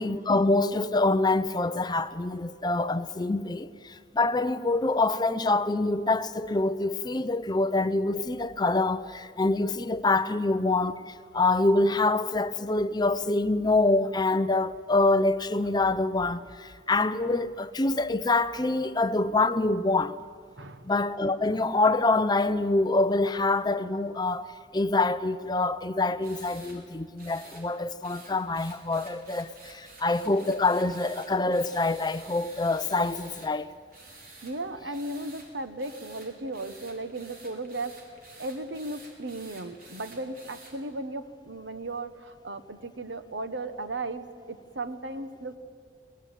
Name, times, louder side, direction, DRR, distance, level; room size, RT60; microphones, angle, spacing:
voice 1, 0.0-20.2 20.9-24.5 24.7-33.7, left 2 dB, 25° left, 0.6 m, -25 dB
voice 2, 20.6-20.9 34.4-38.0 38.4-45.6, right 2 dB, 75° right, 1.3 m, -36 dB
sound 1, 26.2-26.8 27.2-27.6 28.0-33.5 33.9-34.5 34.9-35.5 35.8-40.7, right 3 dB, 50° right, 5.0 m, -50 dB
23.0 x 19.0 x 9.2 m
head